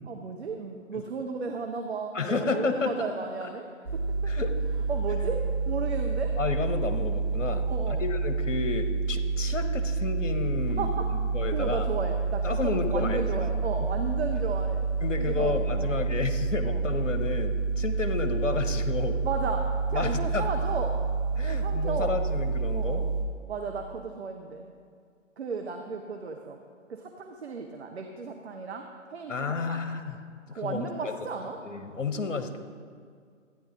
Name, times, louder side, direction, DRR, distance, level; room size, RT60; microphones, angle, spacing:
voice 1, 0.1-3.7 4.9-6.3 7.6-8.0 10.8-14.8 15.2-16.0 16.6-16.8 19.2-21.0 21.4-22.2 22.7-23.1 23.5-24.6 25.4-26.6 26.9-29.8 30.5-31.6, right 4 dB, 55° right, 3 dB, 0.9 m, -34 dB
voice 2, 2.1-2.9 4.3-4.5 6.4-10.9 11.3-11.9 12.4-13.2 15.0-19.2 19.9-20.5 21.4-23.0 29.3-30.2 30.5-31.1 31.6-32.6, left 4 dB, 70° left, 7 dB, 1.0 m, -31 dB
sound 1, 3.9-23.3, right 4 dB, 80° right, 1.9 m, -28 dB
12.5 x 9.6 x 3.8 m, 2.1 s
figure-of-eight pair, 135°, 38 cm